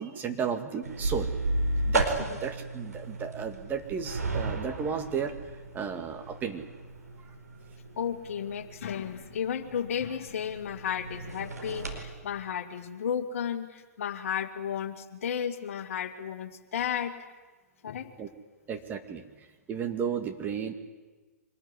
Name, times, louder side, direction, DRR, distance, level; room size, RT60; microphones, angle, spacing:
voice 1, 0.0-1.3 1.9-5.3 5.7-6.7 18.2-18.3 18.7-19.2 19.7-20.7, right 7 dB, 20° right, 6 dB, 2.2 m, -33 dB
sound 1, 0.8-12.0, right 2 dB, 80° right, 4.7 m, -34 dB
voice 2, 8.0-17.1 17.8-18.1, left 8 dB, 55° left, 9 dB, 2.1 m, -33 dB
25.0 x 20.5 x 9.9 m, 1.3 s
figure-of-eight pair, 115°, 9 cm